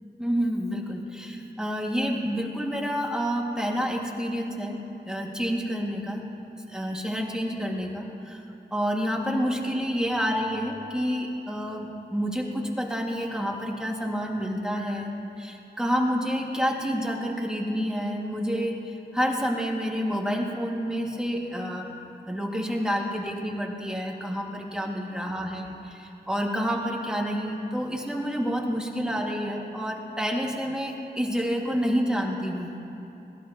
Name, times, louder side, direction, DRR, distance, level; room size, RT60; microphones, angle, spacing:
voice 1, 0.2-6.3 6.5-8.4 8.7-15.1 15.4-21.9 22.3-32.7, equal, 5° right, -1 dB, 2.1 m, -29 dB
21.5 x 16.0 x 3.0 m, 2.9 s
wide cardioid pair, 55°, 18 cm